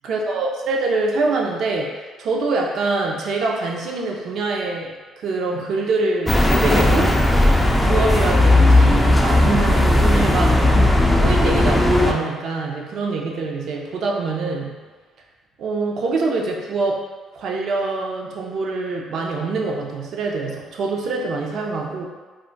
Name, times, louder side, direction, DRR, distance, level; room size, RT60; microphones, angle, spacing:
voice 1, 0.0-7.2 7.8-10.8 11.1-14.7 15.6-17.0 17.3-22.1, right 3 dB, 65° right, 0 dB, 0.5 m, -24 dB
sound 1, 6.3-12.1, left 1 dB, 10° left, 0.3 m, -16 dB
2.3 x 2.2 x 3.8 m, 1.4 s
supercardioid pair, 80°, 0 cm